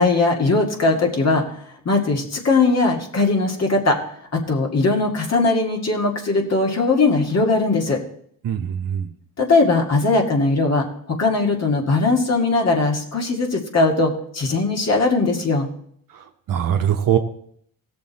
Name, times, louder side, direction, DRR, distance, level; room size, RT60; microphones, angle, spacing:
voice 1, 0.0-1.4 1.9-4.0 4.3-8.0 9.4-15.7, left 3 dB, 45° left, 1 dB, 2.2 m, -19 dB
voice 2, 8.4-9.1 16.5-17.2, right 9 dB, 65° right, 3 dB, 1.1 m, -21 dB
16.5 x 6.8 x 4.2 m, 0.65 s
cardioid pair, 75°, 35 cm